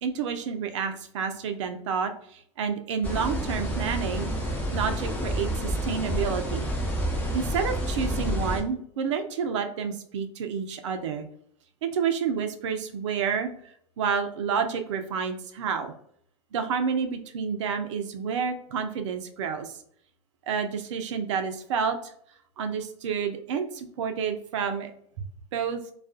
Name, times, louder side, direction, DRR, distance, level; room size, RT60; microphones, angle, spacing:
voice 1, 0.0-4.3 4.7-6.7 7.3-11.3 11.8-13.5 14.0-15.9 16.5-19.8 20.5-22.1 22.6-24.9 25.5-25.8, right 6 dB, 70° right, 7 dB, 0.5 m, -29 dB
sound 1, 3.0-8.6, equal, 10° left, 0.7 m, -29 dB
2.3 x 2.3 x 2.4 m, 0.66 s
hypercardioid pair, 90°, 16 cm